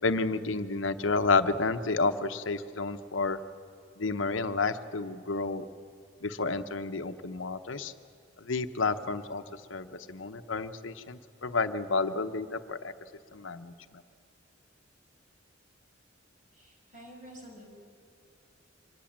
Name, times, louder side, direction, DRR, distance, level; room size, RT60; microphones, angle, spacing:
voice 1, 0.0-3.4 4.0-5.6 6.2-7.9 8.4-9.4 9.7-12.9 13.3-13.7, left 3 dB, 80° left, 10 dB, 0.9 m, -30 dB
voice 2, 16.5-17.6, right 1 dB, 40° right, 1 dB, 5.5 m, -49 dB
24.5 x 19.0 x 7.4 m, 2.4 s
head